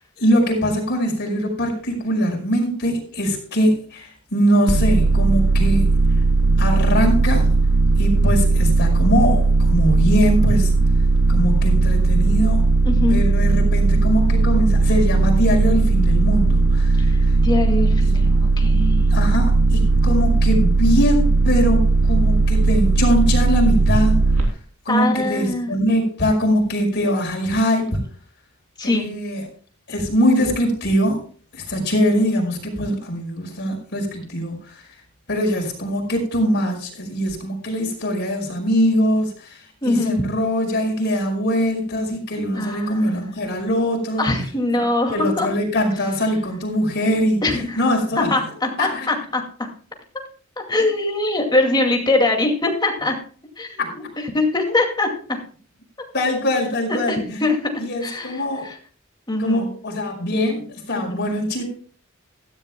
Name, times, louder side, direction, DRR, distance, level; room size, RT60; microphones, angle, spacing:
voice 1, 0.2-5.9 6.6-7.5 8.0-10.7 11.3-12.7 13.1-17.4 19.1-24.2 24.9-28.0 28.8-29.5 29.9-31.2 31.5-34.8 35.3-44.3 45.1-47.4 47.8-48.3 48.8-49.1 53.8-53.9 56.1-57.4 57.8-58.7 59.4-61.6, equal, 55° left, 1 dB, 5.2 m, -22 dB
sound 1, 4.7-24.4, right 3 dB, 75° right, 3.4 m, -17 dB
voice 2, 12.8-13.2 17.1-19.1 24.9-25.7 28.8-29.1 39.8-40.1 42.5-43.2 44.2-45.5 47.4-47.8 48.2-49.7 50.6-53.2 53.6-53.8 54.3-55.4 56.9-58.3 58.6-58.7 59.3-59.7 60.9-61.3, left 2 dB, 20° left, 2 dB, 2.4 m, -22 dB
16.0 x 14.0 x 2.3 m, 0.43 s
head